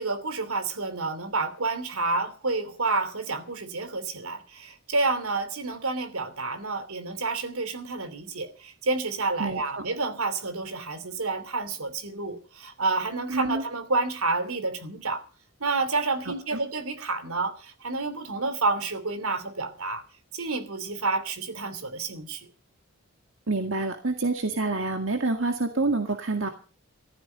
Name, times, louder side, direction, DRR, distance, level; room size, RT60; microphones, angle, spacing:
voice 1, 0.0-15.2 15.6-20.0 20.3-22.5, right 3 dB, 85° right, 2.9 m, -29 dB
voice 2, 9.4-9.8 13.3-13.6 16.3-16.6 23.5-26.5, right 3 dB, 65° right, 2.0 m, -27 dB
15.0 x 14.5 x 5.5 m
head